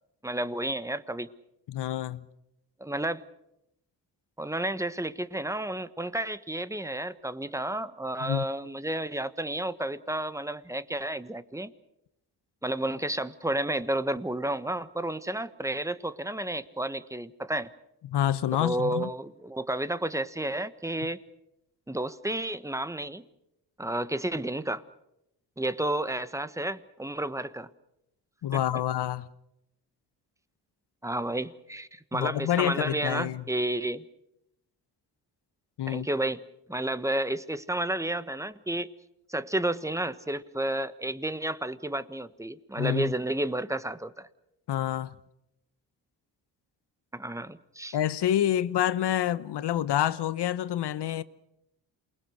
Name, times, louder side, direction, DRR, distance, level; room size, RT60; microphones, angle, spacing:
voice 1, 0.2-1.3 2.8-3.2 4.4-11.7 12.6-17.7 18.6-21.2 21.9-23.2 23.8-24.8 25.6-27.7 28.5-28.6 31.0-34.0 35.9-36.4 36.7-38.9 39.3-44.3 47.1-48.0, right 1 dB, 5° right, 1.3 m, -31 dB
voice 2, 1.7-2.3 8.2-8.5 18.0-19.1 28.4-29.3 32.1-33.4 35.8-36.1 42.8-43.1 44.7-45.1 47.9-51.2, left 11 dB, 65° left, 1.1 m, -27 dB
28.0 x 20.5 x 6.5 m
supercardioid pair, 55°, 44 cm